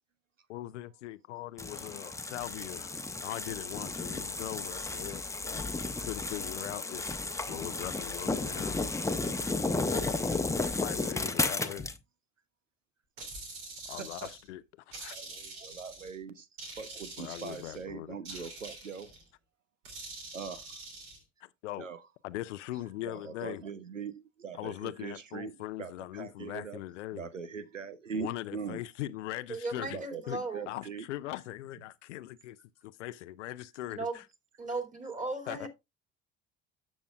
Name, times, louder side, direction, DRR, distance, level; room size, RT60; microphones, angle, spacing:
voice 1, 0.5-2.9 3.2-5.6 6.1-7.0 7.5-8.8 9.9-10.4 10.8-11.9 13.9-14.6 15.0-15.2 17.2-18.5 21.4-21.9 22.2-23.6 24.5-27.3 28.1-30.0 30.3-30.4 30.7-32.6 32.8-34.2 35.5-35.7, left 16 dB, 70° left, 0.5 m, -40 dB
sound 1, 1.6-12.0, left 3 dB, 10° left, 0.9 m, -33 dB
sound 2, 13.2-14.5 14.9-16.2 16.6-17.8 18.2-19.2 19.8-21.2, right 3 dB, 65° right, 3.0 m, -45 dB
voice 2, 14.0-14.3 15.1-16.5 16.8-19.1 20.3-20.6 21.8-22.0 23.1-25.5 25.8-26.8 27.1-28.8 29.9-31.0, right 6 dB, 90° right, 0.5 m, -41 dB
voice 3, 29.5-30.7 33.9-34.2 34.6-35.7, right 3 dB, 20° right, 2.6 m, -36 dB
13.5 x 6.2 x 2.3 m
figure-of-eight pair, 50°, 37 cm